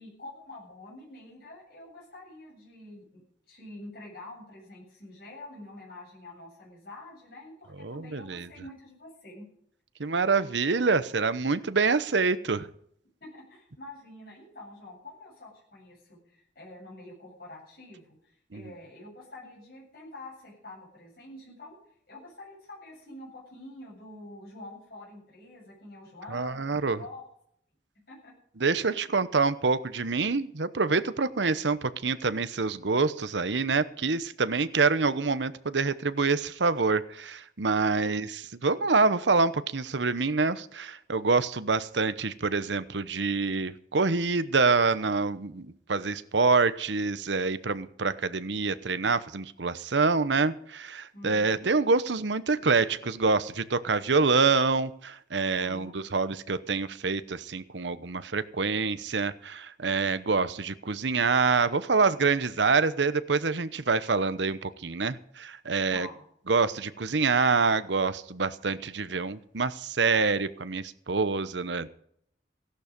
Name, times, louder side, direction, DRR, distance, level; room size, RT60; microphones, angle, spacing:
voice 1, 0.0-9.5 13.2-21.8 22.1-27.2 28.1-28.3 28.8-29.0 31.2-31.3 37.8-38.2 51.1-51.7 55.5-56.1 65.9-66.2, left 2 dB, 55° left, -4 dB, 7.7 m, -47 dB
voice 2, 7.8-8.5 10.0-12.7 18.5-18.6 26.3-27.0 28.6-66.1 66.5-71.9, right 4 dB, 85° right, 14 dB, 0.9 m, -26 dB
17.0 x 11.5 x 5.3 m, 0.67 s
head